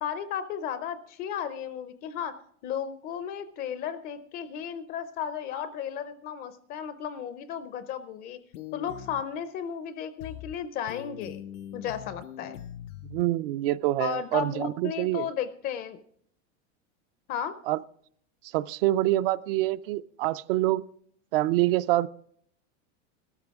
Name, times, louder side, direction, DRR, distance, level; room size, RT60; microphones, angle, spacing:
voice 1, 0.0-2.3 2.6-8.4 8.7-11.4 11.7-12.6 14.0-16.0 17.3-17.5, left 8 dB, 25° left, 12 dB, 0.4 m, -34 dB
sound 1, 8.5-9.2 10.2-10.5 10.9-13.2, left 11 dB, 85° left, 0.7 m, -42 dB
voice 2, 13.0-15.3 17.7-17.8 18.5-20.9 21.3-22.1, right 16 dB, 50° right, 17 dB, 0.4 m, -26 dB
15.0 x 13.0 x 3.5 m, 0.64 s
supercardioid pair, 160°, 36 cm